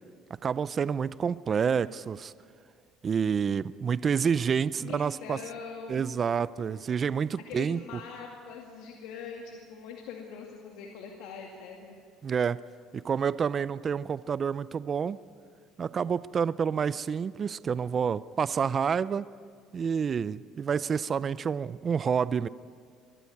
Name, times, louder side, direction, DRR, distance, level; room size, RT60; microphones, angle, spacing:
voice 1, 0.4-2.3 3.0-5.4 5.9-7.8 12.2-12.6 12.9-15.2 15.8-19.3 19.7-22.5, right 6 dB, 35° right, 18 dB, 0.4 m, -28 dB
voice 2, 4.8-6.0 7.5-12.0, left 6 dB, 80° left, 0 dB, 2.2 m, -42 dB
22.5 x 13.0 x 9.4 m, 2.2 s
cardioid pair, 105°, 0 cm